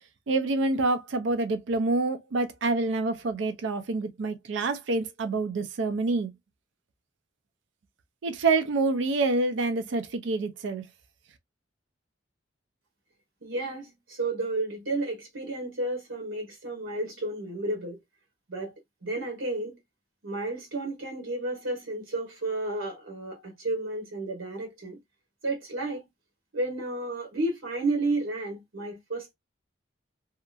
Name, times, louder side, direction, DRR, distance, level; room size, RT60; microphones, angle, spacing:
voice 1, 0.3-6.3 8.2-10.8, right 3 dB, 70° right, 0.4 m, -27 dB
voice 2, 13.4-18.0 18.5-18.7 19.0-19.8 20.2-25.0 25.4-26.0 26.5-29.3, right 2 dB, 90° right, 1.2 m, -32 dB
2.8 x 2.4 x 2.3 m
head